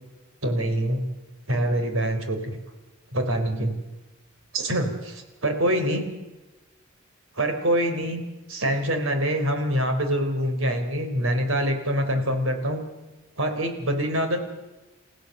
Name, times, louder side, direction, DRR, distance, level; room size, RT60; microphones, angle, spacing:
voice 1, 0.4-1.1 1.5-2.6 3.1-3.7 4.5-5.1 5.4-6.1 7.4-8.2 8.5-12.8 13.4-14.4, right 1 dB, 75° right, 6 dB, 4.0 m, -25 dB
29.5 x 15.5 x 6.8 m, 1.1 s
head